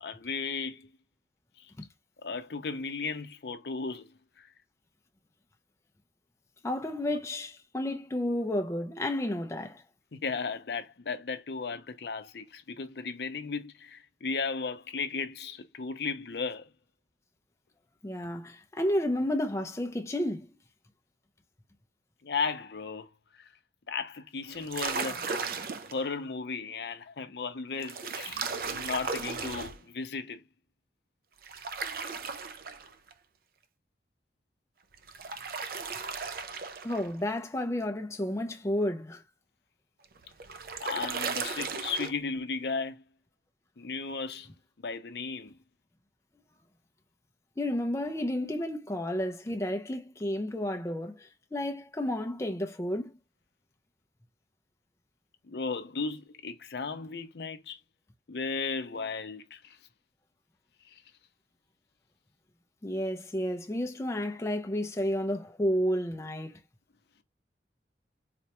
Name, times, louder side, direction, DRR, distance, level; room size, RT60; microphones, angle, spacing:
voice 1, 0.0-0.9 2.2-4.5 7.8-7.9 10.1-16.7 22.2-23.1 23.9-25.4 25.9-30.4 40.8-43.0 43.8-45.6 48.4-48.5 55.5-57.8 58.3-59.8 60.9-61.0, left 4 dB, 65° left, 0.6 m, -35 dB
voice 2, 6.6-9.8 18.0-20.5 36.8-39.2 47.6-53.1 62.8-66.6, left 1 dB, 15° left, 0.4 m, -31 dB
sound 1, 24.5-26.0 27.8-29.8 31.4-33.1 34.9-37.1 40.0-42.1, right 4 dB, 55° right, 0.4 m, -36 dB
4.1 x 2.2 x 2.9 m
head